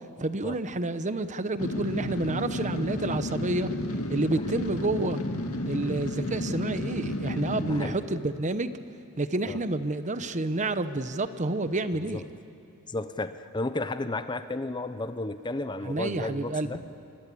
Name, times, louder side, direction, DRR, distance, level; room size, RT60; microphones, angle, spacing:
voice 1, 0.2-3.7 4.1-5.2 5.7-8.7 9.2-12.2 15.8-16.7, right 2 dB, 35° right, 12 dB, 0.9 m, -29 dB
sound 1, 1.6-7.9, left 1 dB, 75° left, 2.2 m, -32 dB
voice 2, 7.3-8.0 9.5-9.6 12.1-12.2 12.9-16.8, left 2 dB, 20° left, 11 dB, 0.7 m, -33 dB
27.5 x 23.0 x 8.5 m, 2.6 s
head